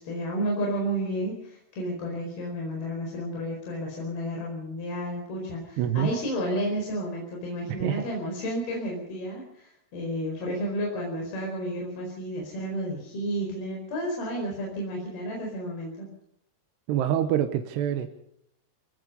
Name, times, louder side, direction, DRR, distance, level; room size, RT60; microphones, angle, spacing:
voice 1, 0.0-16.1, equal, 65° left, -1 dB, 6.6 m, -31 dB
voice 2, 5.8-6.1 7.8-8.1 16.9-18.1, right 10 dB, 85° right, 8 dB, 3.2 m, -26 dB
27.0 x 17.5 x 5.5 m, 0.74 s
omnidirectional pair, 4.8 m